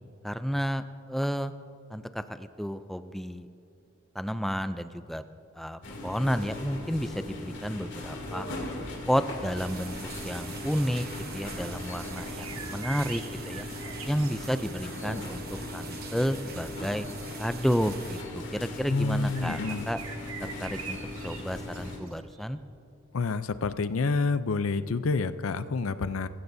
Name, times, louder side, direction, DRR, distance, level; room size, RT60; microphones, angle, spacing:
voice 1, 0.2-1.5 1.9-3.5 4.1-5.2 5.6-8.5 9.1-10.0 10.2-11.0 11.3-13.6 14.1-15.4 15.7-17.1 17.4-19.6 19.9-20.0 20.4-21.0 21.2-22.6, equal, ahead, 11 dB, 0.4 m, -31 dB
sound 1, 5.8-22.0, left 2 dB, 60° left, 2.8 m, -39 dB
sound 2, 9.6-18.2, right 5 dB, 45° right, 1.0 m, -44 dB
sound 3, 12.1-14.9 19.3-22.4, right 6 dB, 85° right, 1.6 m, -43 dB
voice 2, 18.9-19.9 23.1-26.3, left 4 dB, 75° left, 13 dB, 0.5 m, -28 dB
23.5 x 15.5 x 2.7 m, 2.5 s
head